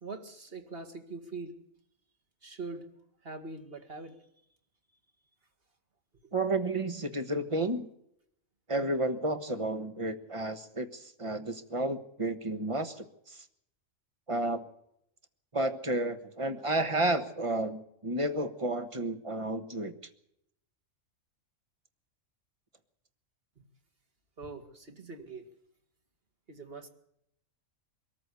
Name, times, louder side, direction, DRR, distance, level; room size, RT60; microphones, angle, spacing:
voice 1, 0.0-1.5 2.4-2.9 3.2-4.2 6.2-6.3 24.4-25.5 26.5-26.9, right 3 dB, 45° right, 6 dB, 2.2 m, -43 dB
voice 2, 6.3-7.9 8.7-13.4 14.3-14.7 15.5-19.9, right 2 dB, 25° right, 10 dB, 1.3 m, -31 dB
23.5 x 14.0 x 8.3 m, 0.77 s
omnidirectional pair, 1.4 m